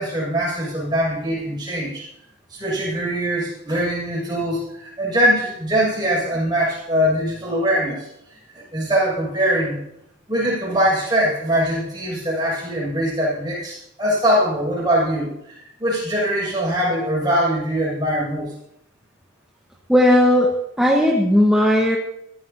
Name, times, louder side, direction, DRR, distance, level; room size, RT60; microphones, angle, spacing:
voice 1, 0.0-2.0 2.5-8.1 8.7-9.8 10.3-18.5, equal, 20° right, -4 dB, 6.9 m, -22 dB
voice 2, 19.9-20.5 20.8-22.0, left 1 dB, 5° right, -2 dB, 1.4 m, -16 dB
22.0 x 14.0 x 2.9 m, 0.80 s
head